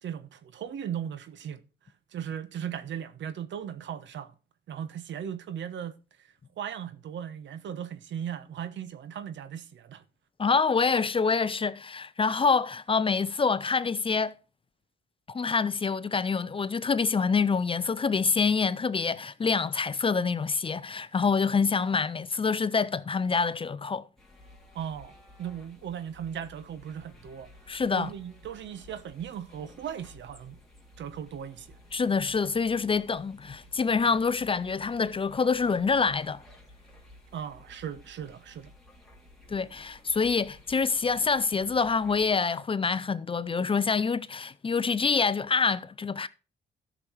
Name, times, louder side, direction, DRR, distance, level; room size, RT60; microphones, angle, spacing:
voice 1, 0.0-1.6 2.1-4.3 4.7-5.9 6.6-10.0 24.7-25.1 25.4-27.5 28.0-30.6 31.0-31.7 37.3-38.7, right 9 dB, 65° right, 1.2 m, -37 dB
voice 2, 10.4-14.3 15.3-24.0 27.7-28.1 31.9-36.4 39.5-46.3, left 5 dB, 25° left, 0.6 m, -26 dB
sound 1, 24.2-42.3, left 1 dB, ahead, 3.2 m, -54 dB
13.0 x 6.3 x 4.6 m
cardioid pair, 90°, 20 cm